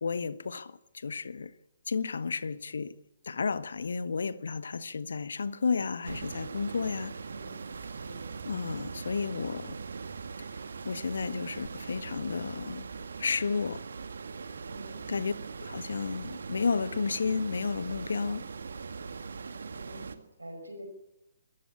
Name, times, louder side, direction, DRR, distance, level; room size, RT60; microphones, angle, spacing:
voice 1, 0.0-1.5 1.9-2.9 3.2-7.1 8.4-9.8 10.8-12.9 13.2-13.8 15.1-15.3 15.6-18.5, left 5 dB, 60° left, 1.3 m, -32 dB
sound 1, 6.0-20.2, right 5 dB, 60° right, 1.8 m, -41 dB
voice 2, 7.3-8.3 14.6-15.1 19.7-20.8, right 1 dB, 75° right, 5.3 m, -47 dB
25.5 x 14.5 x 8.4 m
figure-of-eight pair, 130°, 0 cm